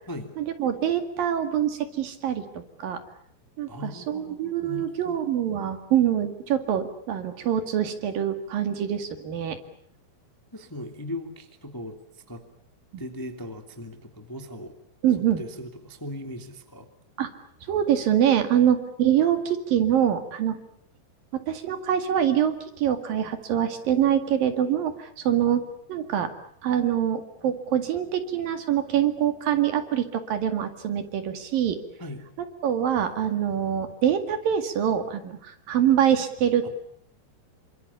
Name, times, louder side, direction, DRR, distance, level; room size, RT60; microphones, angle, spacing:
voice 1, 0.4-2.4 2.8-3.0 3.6-9.6 15.0-15.4 17.2-17.3 17.7-20.6 21.3-26.3 26.6-31.8 32.6-36.7, right 10 dB, 60° right, 8 dB, 3.6 m, -24 dB
voice 2, 3.7-5.2 10.5-12.4 13.0-14.7 15.4-16.9 32.0-32.2 36.6-36.7, left 1 dB, 10° left, 6 dB, 1.5 m, -38 dB
28.5 x 25.5 x 7.0 m, 0.66 s
omnidirectional pair, 4.9 m